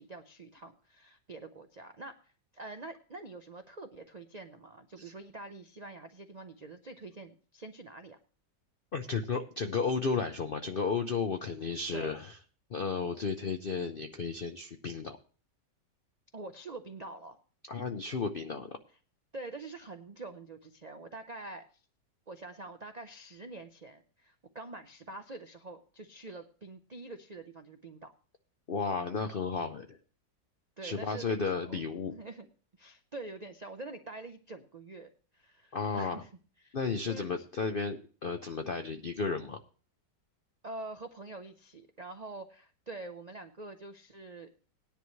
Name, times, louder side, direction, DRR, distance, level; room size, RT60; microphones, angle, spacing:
voice 1, 0.0-8.2 11.9-12.2 16.3-17.4 19.3-21.8 22.3-28.1 30.8-32.5 32.8-36.3 36.6-36.8 37.0-37.3 40.6-44.5, right 2 dB, 90° right, 7 dB, 0.3 m, -46 dB
voice 2, 8.9-12.4 12.7-15.2 17.7-18.8 28.7-30.0 30.8-32.2 35.7-36.2 36.7-39.6, left 5 dB, 75° left, 6 dB, 0.5 m, -33 dB
17.5 x 10.5 x 3.1 m, 0.40 s
omnidirectional pair, 1.9 m